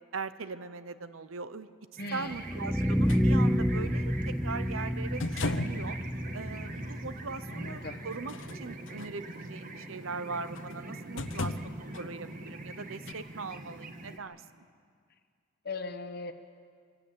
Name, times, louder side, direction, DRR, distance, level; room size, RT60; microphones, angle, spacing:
voice 1, 0.1-1.7 2.1-6.0 6.3-14.7, right 4 dB, 90° right, 13 dB, 0.9 m, -40 dB
voice 2, 2.0-2.8 7.5-8.0 15.6-16.3, left 3 dB, 50° left, 9 dB, 1.3 m, -39 dB
sound 1, 2.0-14.2, right 2 dB, 45° right, 1.5 m, -43 dB
sound 2, 2.3-8.3, equal, ahead, 0.6 m, -29 dB
sound 3, 3.1-3.2 5.2-5.9 6.7-6.8 8.1-9.1 10.5-10.8 11.2-12.0 13.1-13.2, left 2 dB, 70° left, 0.9 m, -35 dB
23.5 x 16.5 x 8.5 m, 2.1 s
head